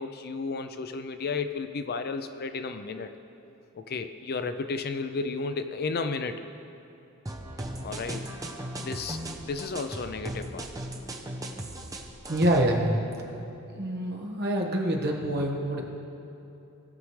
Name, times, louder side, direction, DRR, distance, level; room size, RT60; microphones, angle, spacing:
voice 1, 0.0-3.1 3.7-6.4 7.8-8.3 8.8-10.7, left 4 dB, 45° left, 9 dB, 0.4 m, -33 dB
sound 1, 7.3-12.6, right 1 dB, 15° right, 0.7 m, -37 dB
voice 2, 12.3-13.0 13.7-15.8, right 1 dB, 50° right, 0 dB, 1.3 m, -26 dB
18.5 x 6.3 x 3.2 m, 3.0 s
head